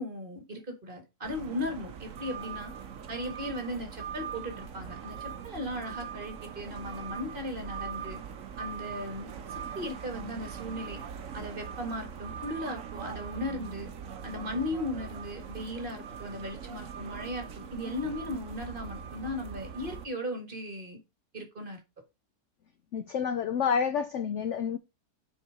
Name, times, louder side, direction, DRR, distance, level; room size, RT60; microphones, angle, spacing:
voice 1, 0.0-2.7 3.1-8.2 8.6-11.0 11.3-13.9 14.2-21.0 21.3-21.8, left 1 dB, 30° right, 1.9 m, -37 dB
sound 1, 1.2-20.0, right 7 dB, 55° right, 1.2 m, -41 dB
voice 2, 22.9-24.8, left 7 dB, 65° left, 0.7 m, -29 dB
6.9 x 4.6 x 4.9 m
omnidirectional pair, 1.8 m